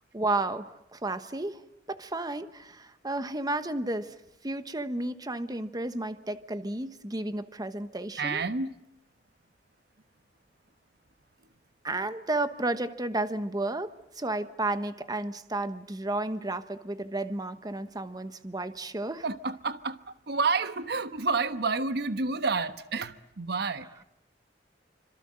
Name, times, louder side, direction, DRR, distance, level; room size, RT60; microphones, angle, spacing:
voice 1, 0.1-1.6 1.9-4.1 4.4-8.4 11.8-13.9 14.2-19.2, right 2 dB, 20° right, 1.2 m, -32 dB
voice 2, 8.2-8.7 19.2-20.0 20.3-23.9, right 4 dB, 65° right, 1.2 m, -29 dB
26.5 x 26.0 x 7.6 m
head